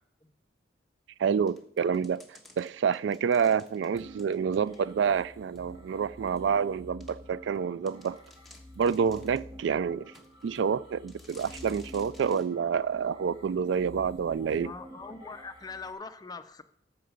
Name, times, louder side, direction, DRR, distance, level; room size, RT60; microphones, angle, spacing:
voice 1, 1.2-8.2 8.8-10.1 10.4-14.7, right 6 dB, 85° right, 0.3 m, -28 dB
sound 1, 1.5-5.1 5.5-5.6 6.4-6.5 7.0-7.1 7.5-7.6 7.9-9.5 10.1-10.7 11.1-12.5, left 2 dB, ahead, 1.2 m, -55 dB
sound 2, 3.9-15.9, left 1 dB, 30° right, 2.6 m, -49 dB
voice 2, 14.6-16.6, left 4 dB, 20° left, 0.5 m, -42 dB
14.5 x 5.9 x 5.1 m
head